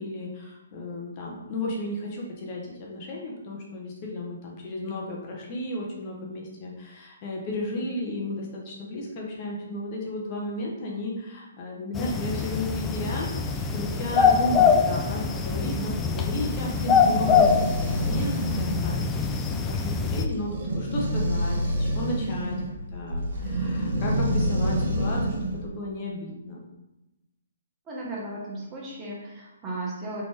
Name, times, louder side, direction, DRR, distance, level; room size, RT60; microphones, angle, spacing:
voice 1, 0.0-22.5 22.9-25.3 25.6-26.7, left 1 dB, 35° left, -2 dB, 0.9 m, -33 dB
sound 1, 11.9-20.3, left 6 dB, 15° left, 0.3 m, -24 dB
sound 2, 16.2-25.6, equal, 50° right, 1.1 m, -28 dB
voice 2, 27.9-30.2, right 2 dB, 20° right, -5 dB, 1.2 m, -35 dB
3.8 x 3.5 x 3.3 m, 0.97 s
hypercardioid pair, 140°, 0 cm